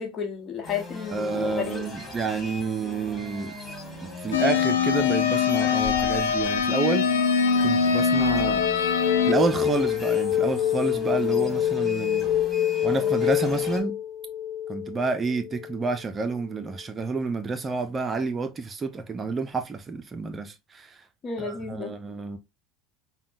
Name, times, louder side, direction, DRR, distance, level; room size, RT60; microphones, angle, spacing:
voice 1, 0.0-1.8 21.2-21.9, left 6 dB, 40° left, 1.1 m, -32 dB
sound 1, 0.6-13.8, left 2 dB, 20° left, 2.1 m, -40 dB
voice 2, 1.1-3.6 4.0-7.1 7.6-8.6 9.2-12.3 12.8-14.0 14.7-21.0 21.4-22.4, right 4 dB, 30° right, 0.5 m, -29 dB
sound 2, 4.3-9.3, left 6 dB, 85° left, 0.5 m, -23 dB
sound 3, 5.8-6.6 8.3-15.9, left 11 dB, 60° left, 1.1 m, -26 dB
5.3 x 2.2 x 2.5 m
hypercardioid pair, 75°, 0 cm